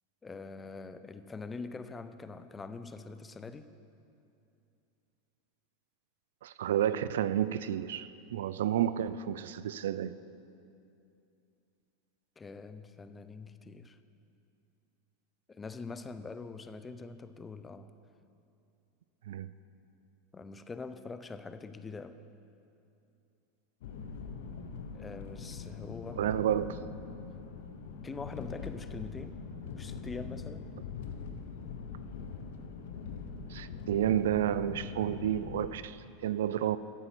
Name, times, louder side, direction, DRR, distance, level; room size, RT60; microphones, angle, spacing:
voice 1, 0.2-3.7 12.4-14.0 15.5-17.9 20.3-22.2 24.9-26.2 28.0-29.4 29.7-30.7, left 4 dB, 20° left, 11 dB, 0.6 m, -44 dB
voice 2, 6.4-10.1 19.3-19.5 26.2-26.8 33.5-36.8, right 11 dB, 80° right, 15 dB, 0.4 m, -31 dB
sound 1, 23.8-35.7, left 5 dB, 75° left, 1.0 m, -42 dB
13.0 x 8.1 x 6.0 m, 2.6 s
hypercardioid pair, 105°, 0 cm